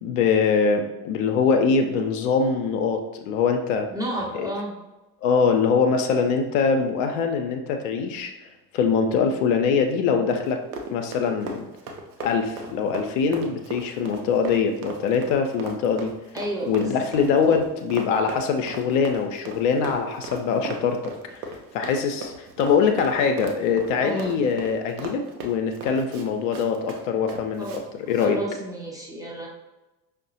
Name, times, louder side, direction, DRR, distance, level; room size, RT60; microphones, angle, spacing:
voice 1, 0.0-3.9 4.3-4.5 5.2-8.3 8.7-10.6 10.9-11.6 12.2-16.1 16.7-21.4 21.7-27.8 28.1-28.4, left 5 dB, 55° left, 4 dB, 0.5 m, -23 dB
voice 2, 3.9-4.7 16.3-16.9 24.0-24.3 27.6-27.8 28.2-29.5, right 1 dB, 10° right, -3 dB, 0.5 m, -31 dB
Run, 10.4-27.8 28.1-28.3, right 2 dB, 70° right, 0.6 m, -37 dB
5.3 x 2.0 x 2.6 m, 1.0 s
figure-of-eight pair, 60°, 46 cm